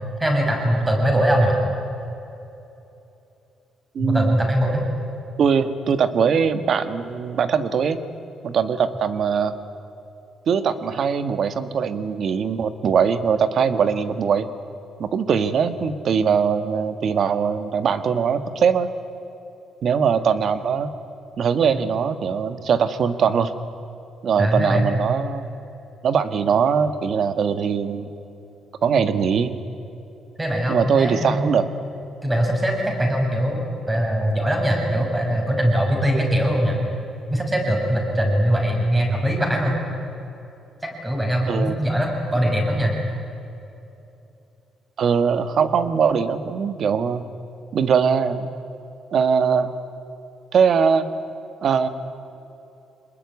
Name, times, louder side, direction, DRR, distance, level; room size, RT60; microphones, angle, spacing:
voice 1, 0.2-1.6 4.0-4.8 24.4-25.0 30.4-31.6 32.2-36.8 37.3-39.8 40.8-43.0, equal, 10° right, 1 dB, 6.4 m, -21 dB
voice 2, 3.9-4.4 5.4-8.0 8.4-9.5 10.5-14.5 15.0-18.9 19.8-20.9 21.4-23.5 24.2-25.4 26.0-28.1 28.8-29.6 30.7-31.6 41.5-41.7 45.0-47.2 47.7-48.5 49.1-49.7 50.5-51.1 51.6-51.9, right 6 dB, 55° right, 11 dB, 1.6 m, -21 dB
25.5 x 20.5 x 9.7 m, 2.9 s
cardioid pair, 130°, 0 cm